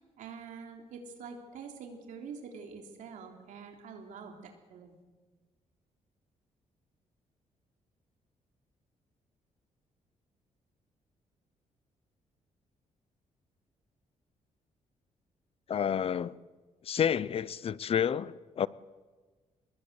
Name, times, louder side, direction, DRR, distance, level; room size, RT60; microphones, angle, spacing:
voice 1, 0.0-5.0, right 5 dB, 90° right, 3.6 m, -46 dB
voice 2, 15.7-16.4 16.9-18.7, left 8 dB, 50° left, 0.7 m, -29 dB
24.0 x 20.5 x 8.3 m
cardioid pair, 105°, 13 cm